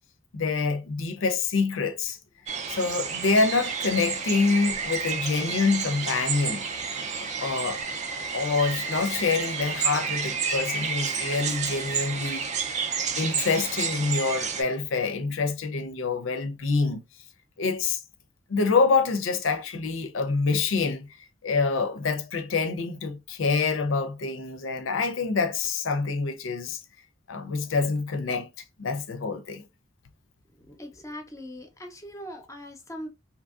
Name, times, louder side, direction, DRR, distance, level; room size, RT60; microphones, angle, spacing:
voice 1, 0.3-2.2 2.7-6.7 7.4-7.8 8.3-12.7 13.2-17.0 17.6-18.0 18.5-21.1 21.4-26.8 27.3-28.5 28.8-29.6, left 4 dB, 90° left, 0.5 m, -26 dB
sound 1, 2.5-14.6, right 6 dB, 40° right, 0.4 m, -30 dB
voice 2, 30.6-33.1, equal, 15° left, 0.6 m, -40 dB
2.8 x 2.6 x 2.3 m
head